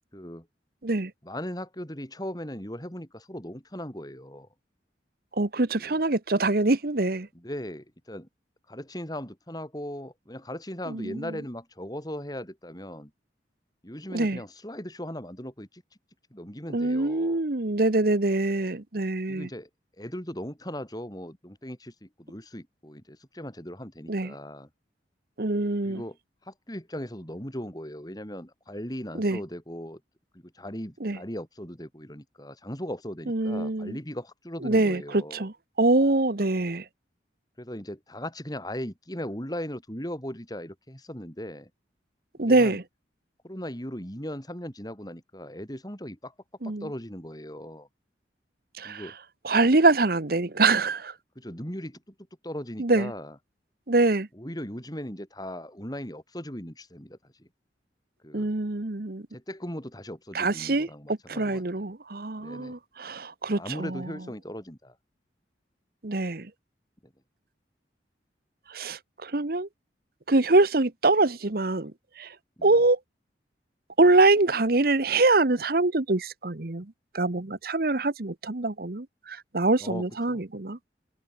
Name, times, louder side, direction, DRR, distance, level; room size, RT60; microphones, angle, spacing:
voice 1, 0.1-0.5 1.2-4.5 5.8-6.0 7.3-8.3 8.7-13.1 13.8-15.8 16.3-17.4 19.3-19.7 20.0-24.7 25.8-26.2 26.5-30.0 30.5-35.5 37.6-41.7 42.4-42.8 43.4-46.3 46.6-47.9 48.8-49.2 51.4-52.0 52.4-53.4 54.3-57.5 58.2-58.5 59.3-61.9 62.4-62.7 63.5-65.0 67.0-67.1 72.6-72.7 79.8-80.4, equal, 20° left, 6.9 m, -38 dB
voice 2, 5.4-7.3 10.9-11.2 14.1-14.4 16.7-19.5 24.1-24.3 25.4-26.0 29.2-29.4 31.0-31.2 33.3-34.0 34.6-36.8 42.4-42.8 46.6-46.9 48.8-49.0 49.4-51.1 52.8-53.1 53.9-54.3 58.3-59.3 60.3-64.1 66.0-66.5 68.7-69.7 70.3-71.9 72.2-72.3 72.6-73.0 74.0-76.9 77.1-80.8, right 2 dB, 55° right, 1.1 m, -24 dB
head